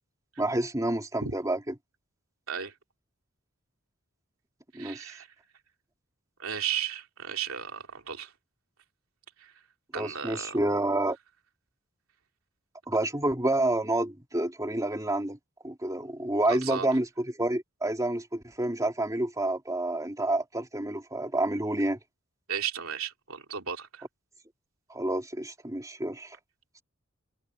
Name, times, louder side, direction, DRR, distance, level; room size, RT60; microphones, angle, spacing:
voice 1, 0.4-1.7 4.7-5.1 9.9-11.2 12.9-15.4 15.6-22.0 24.9-26.4, right 1 dB, 15° right, 2.9 m, -29 dB
voice 2, 4.7-5.3 6.4-8.3 9.4-9.5 9.9-10.6 16.5-16.9 22.5-24.0, right 8 dB, 85° right, 3.0 m, -34 dB
head